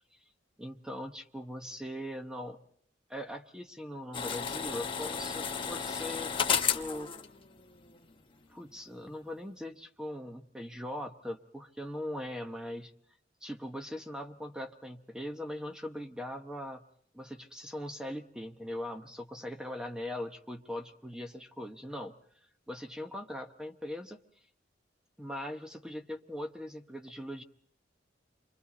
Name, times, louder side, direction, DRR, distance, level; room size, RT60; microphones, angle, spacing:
voice 1, 0.6-2.6 3.1-7.1 8.5-12.9 13.4-16.8 17.1-22.2 22.7-24.2 25.2-27.4, left 1 dB, 5° right, 6 dB, 0.8 m, -40 dB
sound 1, 4.1-8.2 8.4-8.5, left 7 dB, 30° left, 1.1 m, -33 dB
29.0 x 24.5 x 4.0 m, 0.63 s
head